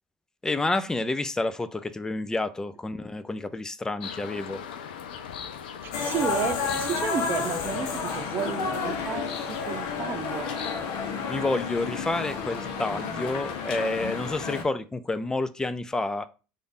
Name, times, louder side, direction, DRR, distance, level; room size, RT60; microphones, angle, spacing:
voice 1, 0.4-4.6 11.3-16.3, left 2 dB, 15° left, 0.4 m, -29 dB
sound 1, 4.0-14.4, left 8 dB, 80° left, 0.4 m, -40 dB
voice 2, 5.8-10.5, right 8 dB, 45° right, 0.7 m, -32 dB
sound 2, 5.9-14.6, left 5 dB, 60° left, 0.9 m, -31 dB
3.3 x 2.5 x 4.0 m
hypercardioid pair, 75°, 5 cm